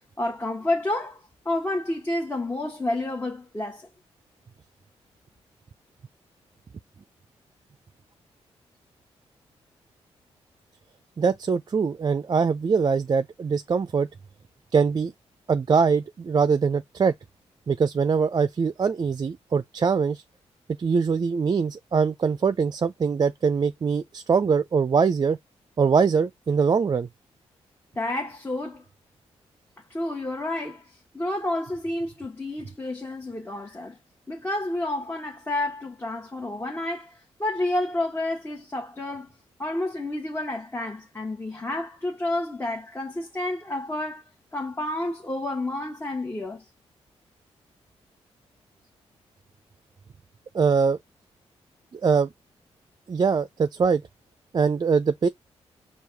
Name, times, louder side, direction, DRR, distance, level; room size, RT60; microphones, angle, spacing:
voice 1, 0.0-3.9 27.9-28.8 29.9-34.0 34.3-39.3 39.6-44.2 44.5-46.6, left 1 dB, 20° left, 1.2 m, -30 dB
voice 2, 11.2-14.1 14.7-15.1 15.5-17.1 17.7-20.2 20.8-25.4 25.8-27.1 50.5-51.0 51.9-52.3 53.1-54.0 54.5-55.3, right 5 dB, 35° right, 0.4 m, -22 dB
4.6 x 2.4 x 3.3 m
supercardioid pair, 55°, 12 cm